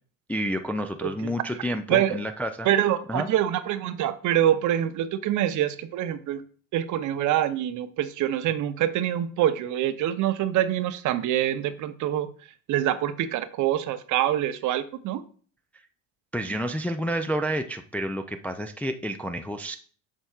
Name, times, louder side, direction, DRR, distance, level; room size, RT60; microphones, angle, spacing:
voice 1, 0.3-2.7 3.1-3.3 16.3-19.8, equal, 5° left, 6 dB, 0.3 m, -29 dB
voice 2, 1.0-1.3 1.9-2.2 2.6-6.4 6.7-12.3 12.7-15.2, right 11 dB, 50° right, 12 dB, 0.7 m, -25 dB
7.4 x 5.3 x 2.4 m, 0.43 s
hypercardioid pair, 80°, 38 cm